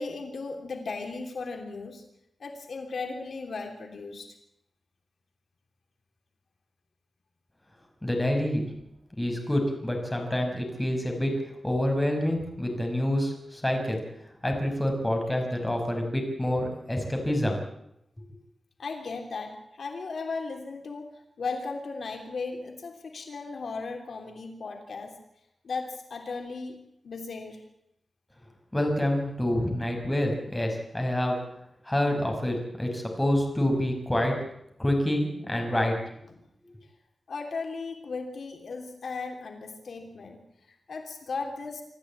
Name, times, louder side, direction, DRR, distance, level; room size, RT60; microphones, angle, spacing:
voice 1, 0.0-2.0 2.4-4.3 18.8-25.1 25.6-26.8 27.0-27.6 37.3-40.4 40.9-41.8, left 4 dB, 70° left, 4 dB, 3.2 m, -36 dB
voice 2, 8.0-8.7 9.2-11.4 11.6-14.0 14.4-17.6 28.7-31.4 31.9-34.4 34.8-35.9, left 1 dB, 15° left, 3 dB, 5.7 m, -27 dB
26.5 x 13.5 x 8.7 m, 0.79 s
wide cardioid pair, 120°, 0 cm